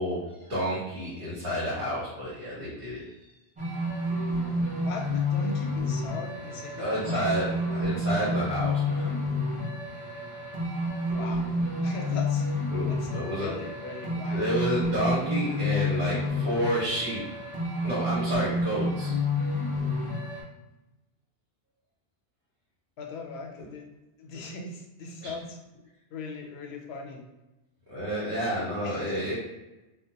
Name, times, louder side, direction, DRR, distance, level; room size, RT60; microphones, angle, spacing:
voice 1, 0.0-3.0 6.8-9.1 12.7-13.5 14.3-17.2 17.8-19.1 25.2-25.3 27.9-29.3, equal, 70° right, -8 dB, 1.1 m, -30 dB
sound 1, 3.6-20.4, left 1 dB, 10° right, 0.4 m, -29 dB
voice 2, 4.8-7.4 11.1-11.4 11.8-12.5 12.9-14.5 23.0-23.8 24.2-25.6 26.1-27.2 28.8-29.3, left 3 dB, 85° left, 1 dB, 0.8 m, -39 dB
2.3 x 2.1 x 2.8 m, 1.0 s
omnidirectional pair, 1.1 m